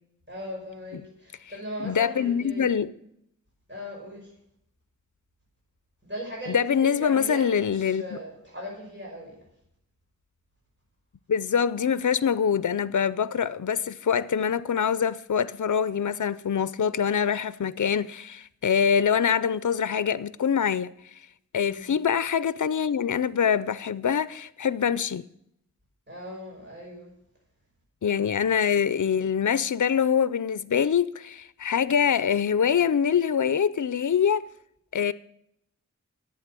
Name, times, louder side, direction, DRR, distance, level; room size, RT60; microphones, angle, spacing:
voice 1, 0.3-2.8 3.7-4.3 6.0-9.3 21.6-21.9 26.1-27.1, equal, 35° right, 5.3 m, -38 dB
voice 2, 1.8-2.9 6.5-8.2 11.3-21.2 21.5-25.3 28.0-34.4 34.9-35.1, left 7 dB, 70° left, 0.5 m, -24 dB
11.5 x 8.3 x 7.5 m
wide cardioid pair, 45°, 31 cm